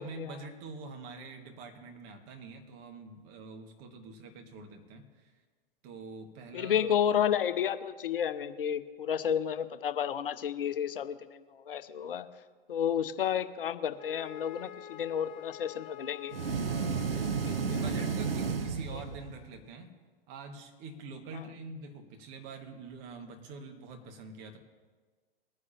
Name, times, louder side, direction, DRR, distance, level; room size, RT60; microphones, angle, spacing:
voice 1, 0.0-5.3 5.8-6.9 16.7-17.1 17.8-19.9 20.3-24.6, right 3 dB, 35° right, 4 dB, 1.7 m, -45 dB
voice 2, 6.5-11.1 11.5-12.3 12.7-16.4 16.7-16.9 17.5-17.8, left 9 dB, 65° left, 12 dB, 0.7 m, -31 dB
Wind instrument woodwind instrument, 14.0-18.8, left 11 dB, 20° left, 0.6 m, -47 dB
Hand dryer, 16.3-19.5, right 5 dB, 80° right, 0.7 m, -32 dB
21.0 x 9.7 x 2.8 m, 1.4 s
figure-of-eight pair, 105°, 29 cm